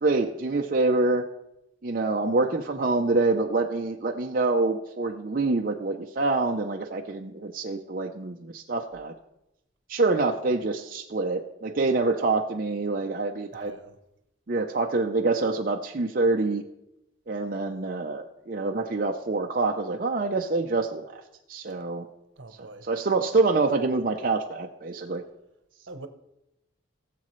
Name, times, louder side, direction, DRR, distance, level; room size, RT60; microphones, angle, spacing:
voice 1, 0.0-1.2 1.8-9.1 9.9-13.7 14.5-16.6 17.3-21.2 21.5-22.1 22.8-25.2, right 3 dB, 45° right, 0.6 m, -26 dB
voice 2, 13.5-14.0 22.4-22.9 25.9-26.1, right 2 dB, 75° right, 0.9 m, -44 dB
18.0 x 7.6 x 3.1 m
head